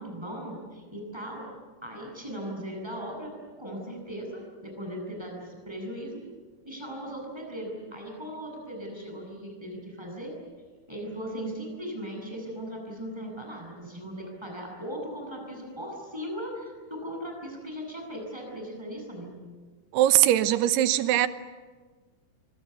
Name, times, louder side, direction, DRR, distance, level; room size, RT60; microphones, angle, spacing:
voice 1, 0.0-1.4 1.8-3.3 3.6-6.2 6.6-10.3 10.9-19.4, equal, 5° right, 0 dB, 7.9 m, -38 dB
voice 2, 19.9-21.3, right 13 dB, 80° right, 12 dB, 3.0 m, -21 dB
25.0 x 24.0 x 8.3 m, 1.4 s
omnidirectional pair, 4.7 m